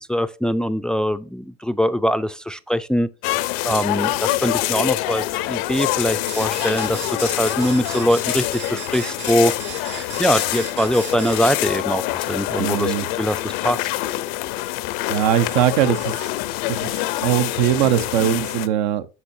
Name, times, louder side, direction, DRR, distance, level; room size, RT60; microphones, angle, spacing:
voice 1, 0.1-3.1 3.6-13.9, equal, 5° left, 0.3 m, -22 dB
sound 1, 3.2-18.7, left 16 dB, 75° left, 0.6 m, -25 dB
sound 2, 6.3-11.8, right 10 dB, 60° right, 0.9 m, -36 dB
voice 2, 12.6-13.1 15.1-16.3 16.7-19.1, right 11 dB, 85° right, 0.7 m, -21 dB
8.2 x 6.0 x 2.7 m
supercardioid pair, 110°, 21 cm